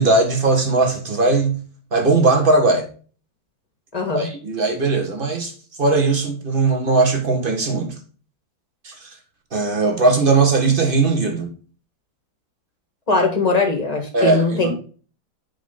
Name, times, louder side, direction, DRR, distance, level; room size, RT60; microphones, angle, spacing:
voice 1, 0.0-1.6 1.9-2.9 4.1-5.5 5.8-8.0 8.8-9.2 9.5-11.5 14.1-14.7, right 3 dB, 25° right, 1.6 m, -18 dB
voice 2, 3.9-4.3 13.1-14.7, left 3 dB, 20° left, 1.7 m, -20 dB
8.8 x 5.0 x 3.9 m
omnidirectional pair, 2.3 m